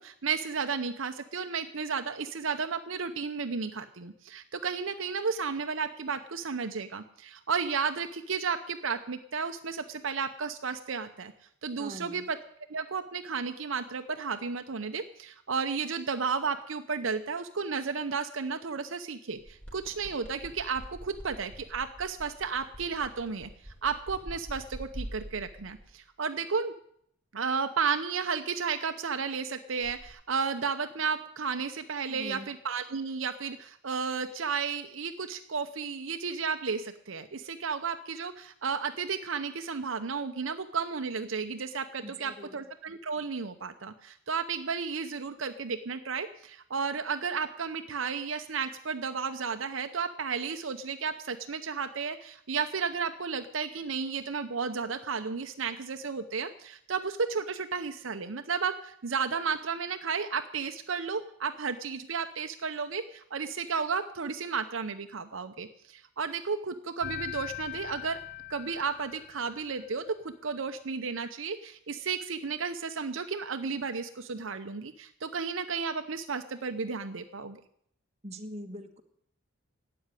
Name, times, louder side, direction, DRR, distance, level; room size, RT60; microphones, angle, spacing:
voice 1, 0.0-11.3 11.6-12.4 12.7-23.5 23.8-26.7 27.3-68.2 68.5-77.6, right 5 dB, 65° right, 8 dB, 0.7 m, -33 dB
voice 2, 11.8-12.3 32.1-32.5 42.0-42.6 78.2-79.0, equal, 30° right, 4 dB, 1.3 m, -42 dB
sound 1, 19.3-25.9 29.8-30.1, equal, 5° left, 3.8 m, -45 dB
sound 2, 67.0-69.9, left 13 dB, 50° left, 0.7 m, -41 dB
12.5 x 8.7 x 9.8 m, 0.69 s
head